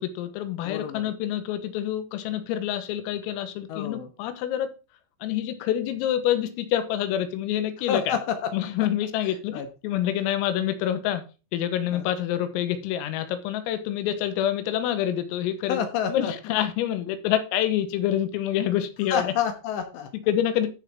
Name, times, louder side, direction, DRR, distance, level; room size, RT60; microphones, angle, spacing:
voice 1, 0.0-4.7 5.2-8.2 8.5-11.2 11.5-15.8 16.1-19.3 20.3-20.7, left 11 dB, 90° left, 3.8 m, -27 dB
voice 2, 0.6-1.1 3.7-4.1 7.9-8.5 9.5-9.7 11.9-12.1 15.7-16.3 19.1-20.1, left 8 dB, 70° left, 3.1 m, -28 dB
13.5 x 6.9 x 3.6 m
omnidirectional pair, 6.0 m